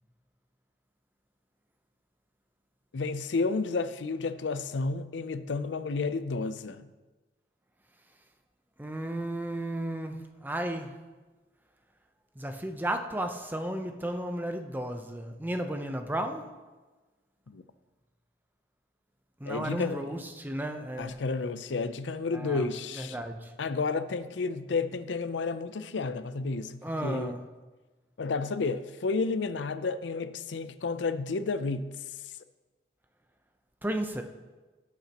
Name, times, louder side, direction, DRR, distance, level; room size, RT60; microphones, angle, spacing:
voice 1, 2.9-6.9 17.5-17.6 19.5-20.1 21.0-23.2 23.6-27.3 28.2-31.9, left 4 dB, 80° left, 0.5 m, -31 dB
voice 2, 8.8-10.9 12.4-16.5 19.4-21.2 22.3-22.7 22.9-23.5 26.8-27.4 33.8-34.2, right 1 dB, 10° right, 0.7 m, -34 dB
18.0 x 8.5 x 2.9 m
head